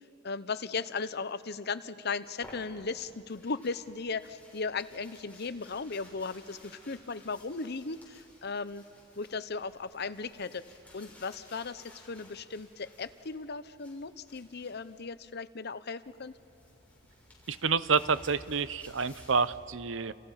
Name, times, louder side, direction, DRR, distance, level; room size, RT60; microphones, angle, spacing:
voice 1, 0.2-8.9 9.2-16.4, left 4 dB, 55° left, 13 dB, 0.9 m, -37 dB
sound 1, 2.2-15.0 16.0-19.6, left 1 dB, 10° left, 7.4 m, -56 dB
voice 2, 17.5-20.1, right 5 dB, 70° right, 15 dB, 0.7 m, -28 dB
30.0 x 29.5 x 5.8 m, 2.6 s
head